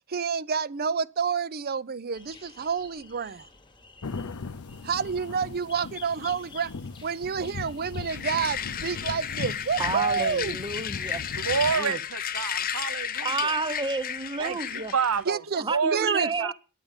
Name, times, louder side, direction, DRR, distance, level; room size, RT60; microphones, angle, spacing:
voice 1, 0.1-3.5 4.8-6.7 7.0-10.6 15.3-15.6 15.9-16.5, right 6 dB, 45° right, 0.6 m, -29 dB
sound 1, 2.1-15.2, left 4 dB, 20° left, 1.3 m, -52 dB
sound 2, 4.0-11.8, left 4 dB, 85° left, 0.7 m, -39 dB
sound 3, 8.1-15.2, left 9 dB, 40° left, 0.6 m, -33 dB
voice 2, 9.8-11.2 11.7-12.0 13.2-14.9 15.5-16.5, right 3 dB, 20° right, 0.9 m, -30 dB
voice 3, 11.4-13.6 14.4-15.4 15.7-16.1 16.4-16.5, right 6 dB, 75° right, 0.8 m, -28 dB
10.0 x 9.6 x 8.8 m
head